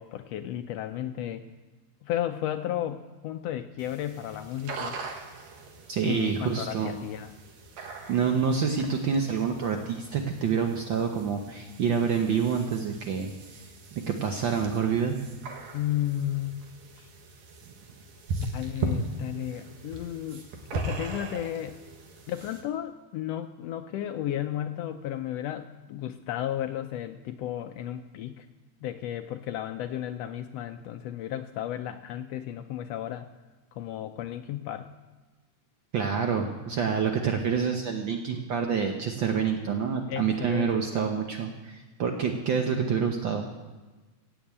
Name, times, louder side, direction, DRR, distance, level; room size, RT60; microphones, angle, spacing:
voice 1, 0.0-1.4 2.0-5.0 6.0-7.3 15.7-16.6 17.0-17.1 18.5-21.8 22.3-28.5 28.8-33.3 33.7-34.9 40.1-41.1, left 11 dB, 85° left, 8 dB, 1.4 m, -33 dB
sound 1, 3.8-22.6, right 3 dB, 65° right, 2.7 m, -39 dB
voice 2, 5.9-6.9 7.8-13.3 13.9-15.2 35.9-43.5, right 6 dB, 85° right, 4 dB, 1.0 m, -27 dB
16.0 x 7.0 x 8.7 m, 1.2 s
omnidirectional pair, 3.5 m